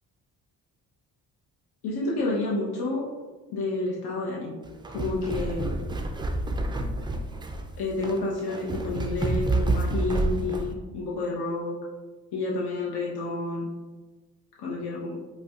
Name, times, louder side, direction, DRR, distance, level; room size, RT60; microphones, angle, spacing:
voice 1, 1.8-3.0 3.5-4.6 4.9-5.7 7.8-11.8 12.3-13.7 14.6-15.2, left 2 dB, 70° left, -4 dB, 0.8 m, -29 dB
sound 1, 4.7-10.7, right 2 dB, 15° right, 0.3 m, -29 dB
4.8 x 2.3 x 2.3 m, 1.3 s
supercardioid pair, 60°, 40 cm